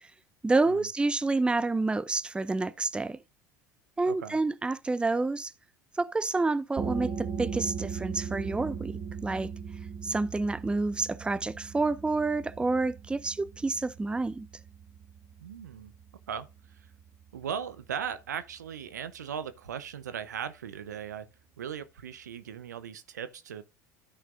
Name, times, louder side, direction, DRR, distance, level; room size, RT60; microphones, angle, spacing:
voice 1, 0.4-3.2 4.0-5.5 6.0-8.9 9.2-9.5 10.0-14.5, right 3 dB, 10° right, 0.6 m, -28 dB
voice 2, 4.1-4.4 15.4-15.9 16.3-16.5 17.3-21.3 21.6-23.6, right 8 dB, 85° right, 0.8 m, -38 dB
sound 1, 6.8-18.1, right 6 dB, 40° right, 1.9 m, -39 dB
13.5 x 5.9 x 2.6 m
hypercardioid pair, 80°, 9 cm